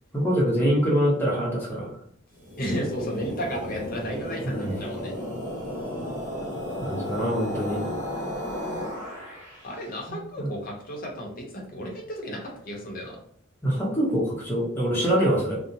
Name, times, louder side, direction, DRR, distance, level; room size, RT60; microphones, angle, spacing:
voice 1, 0.1-1.9 4.4-4.7 6.8-7.8 10.1-10.5 13.6-15.6, equal, 10° left, -5 dB, 0.8 m, -24 dB
sound 1, 2.3-9.7, equal, 40° right, 1.1 m, -33 dB
voice 2, 2.6-5.1 9.6-13.2, equal, 45° left, 0 dB, 0.7 m, -33 dB
2.8 x 2.1 x 2.6 m, 0.66 s
head